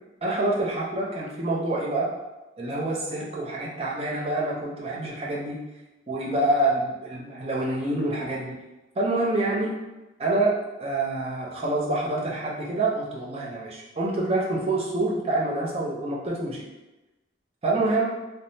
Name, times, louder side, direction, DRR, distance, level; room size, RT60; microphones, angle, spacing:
voice 1, 0.2-2.1 2.6-5.6 6.1-8.5 9.0-9.8 10.2-16.7 17.6-18.1, right 2 dB, 30° right, -3 dB, 0.5 m, -26 dB
3.3 x 2.0 x 2.7 m, 1.0 s
head